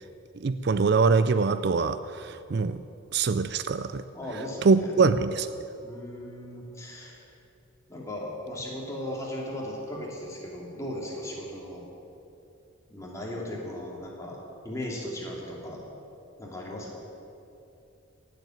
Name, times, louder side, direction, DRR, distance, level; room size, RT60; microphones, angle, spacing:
voice 1, 0.4-2.8 3.1-4.0 4.6-5.5, right 4 dB, 50° right, 13 dB, 0.4 m, -23 dB
voice 2, 4.1-4.9 5.8-7.2 7.9-11.8 12.9-15.8 16.4-17.0, left 1 dB, 15° left, -3 dB, 2.8 m, -37 dB
16.5 x 7.8 x 9.1 m, 2.8 s
head